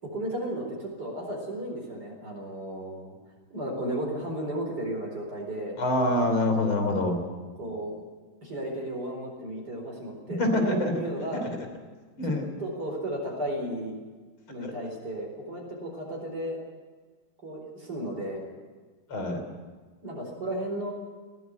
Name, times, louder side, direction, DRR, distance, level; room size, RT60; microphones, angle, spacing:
voice 1, 0.0-3.1 3.5-5.8 7.6-8.0 8.4-11.5 12.2-14.0 14.5-16.6 17.4-18.5 20.0-20.9, right 1 dB, 50° right, -1 dB, 5.0 m, -34 dB
voice 2, 5.8-7.2 10.4-10.9 12.2-12.4 14.6-14.7 19.1-19.4, left 1 dB, 85° left, 5 dB, 4.1 m, -25 dB
20.0 x 17.0 x 8.2 m, 1.4 s
omnidirectional pair, 2.2 m